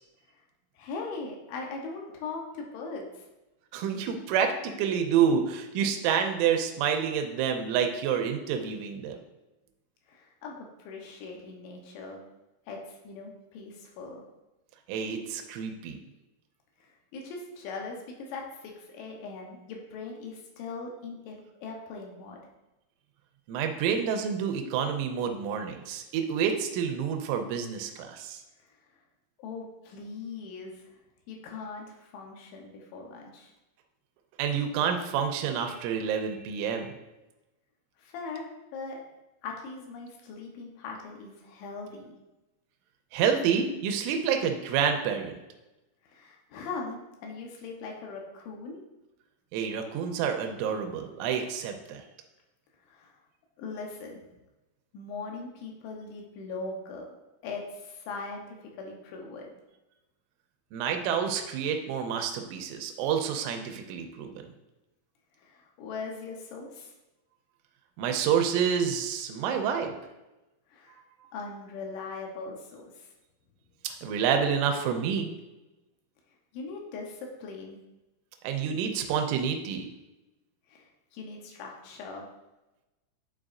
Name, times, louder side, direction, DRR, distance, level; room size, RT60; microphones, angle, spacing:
voice 1, 0.8-3.3 10.1-12.2 12.7-14.2 16.8-22.5 29.4-30.8 31.3-33.5 38.0-39.0 39.4-42.2 46.0-48.8 52.9-53.1 53.6-54.2 54.9-57.2 57.4-59.5 65.4-66.9 70.7-71.0 71.3-73.1 76.5-77.8 80.7-82.3, left 4 dB, 75° left, 0 dB, 3.0 m, -40 dB
voice 2, 3.7-9.2 14.9-16.0 23.5-28.4 34.4-37.0 43.1-45.4 49.5-52.0 60.7-64.3 68.0-69.9 73.8-75.3 78.4-79.9, right 7 dB, 85° right, 5 dB, 3.1 m, -28 dB
11.5 x 4.7 x 2.5 m, 1.0 s
omnidirectional pair, 5.9 m